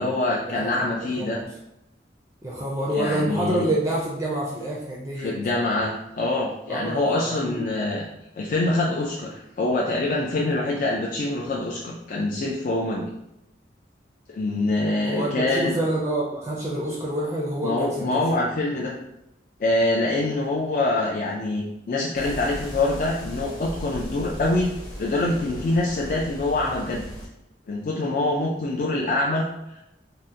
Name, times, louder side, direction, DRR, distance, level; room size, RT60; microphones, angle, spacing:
voice 1, 0.0-1.4 2.9-3.7 5.2-8.0 8.4-13.1 14.3-15.8 17.6-19.0 19.6-24.7 25.0-27.0 27.7-29.8, left 2 dB, 50° left, -3 dB, 0.3 m, -25 dB
voice 2, 2.4-5.3 6.7-7.6 15.0-18.2, right 1 dB, 15° right, -4 dB, 0.4 m, -27 dB
sound 1, 22.1-27.3, equal, 25° left, 0.8 m, -37 dB
2.8 x 2.1 x 3.5 m, 0.89 s
head